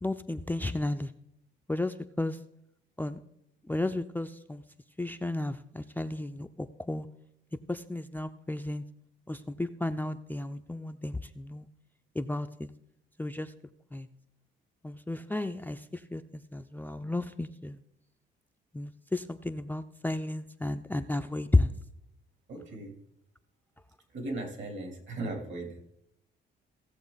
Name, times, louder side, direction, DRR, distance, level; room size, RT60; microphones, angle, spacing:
voice 1, 0.0-1.1 1.7-2.4 3.0-3.2 3.7-4.6 5.0-7.1 7.7-8.8 9.3-11.7 12.2-12.7 13.2-13.5 13.9-14.1 14.8-17.8 18.7-21.7, left 2 dB, 10° left, 9 dB, 0.4 m, -33 dB
voice 2, 22.5-22.9 24.1-25.8, right 2 dB, 65° right, 3 dB, 3.0 m, -37 dB
16.5 x 6.9 x 4.0 m, 0.79 s
cardioid pair, 90°, 20 cm